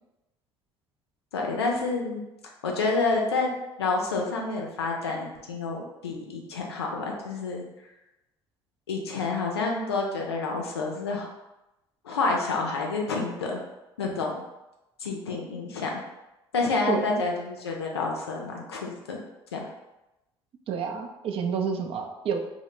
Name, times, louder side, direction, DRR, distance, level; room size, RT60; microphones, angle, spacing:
voice 1, 1.3-2.2 2.6-3.5 3.8-7.6 8.9-11.3 12.0-13.6 14.0-14.3 15.0-16.0 16.5-19.2 19.5-19.6, left 3 dB, 85° left, 0 dB, 0.4 m, -28 dB
voice 2, 16.9-17.2 20.7-22.4, right 6 dB, 45° right, 5 dB, 0.4 m, -29 dB
2.1 x 2.0 x 3.0 m, 0.96 s
figure-of-eight pair, 55°, 13 cm